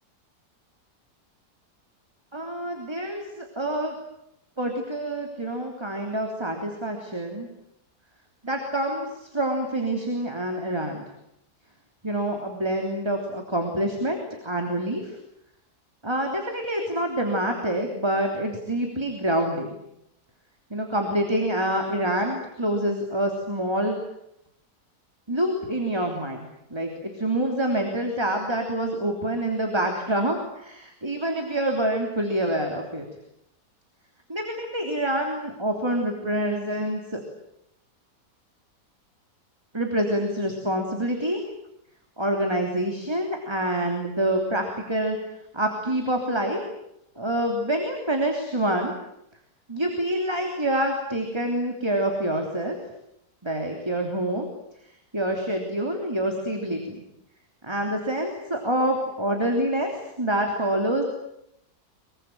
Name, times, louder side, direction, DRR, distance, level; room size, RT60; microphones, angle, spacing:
voice 1, 2.3-4.0 4.6-7.5 8.4-11.1 12.0-15.2 16.0-19.8 20.7-24.0 25.3-33.1 34.3-37.2 39.7-41.4 42.2-45.2 45.5-46.6 47.2-48.9 49.7-52.8 53.4-54.5 55.1-57.0 57.6-61.0, right 1 dB, 15° right, 2 dB, 3.3 m, -26 dB
24.5 x 23.5 x 9.2 m, 0.81 s
omnidirectional pair, 1.7 m